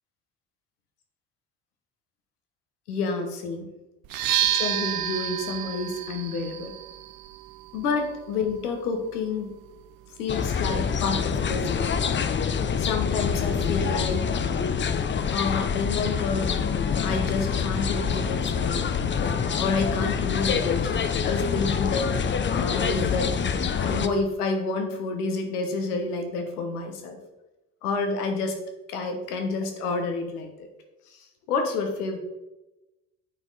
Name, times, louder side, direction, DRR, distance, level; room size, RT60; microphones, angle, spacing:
voice 1, 2.9-3.7 4.5-6.7 7.7-9.5 10.2-11.9 12.3-12.4 12.8-14.2 15.3-16.5 17.0-23.3 23.8-27.2 27.8-28.6 28.9-30.7 31.1-32.2, left 4 dB, 90° left, 4 dB, 1.1 m, -29 dB
sound 1, 4.0-11.8, right 11 dB, 50° right, 0.6 m, -32 dB
sound 2, 10.3-24.1, left 6 dB, 25° left, 0.6 m, -26 dB
9.7 x 4.5 x 3.9 m, 1.0 s
hypercardioid pair, 60°, 44 cm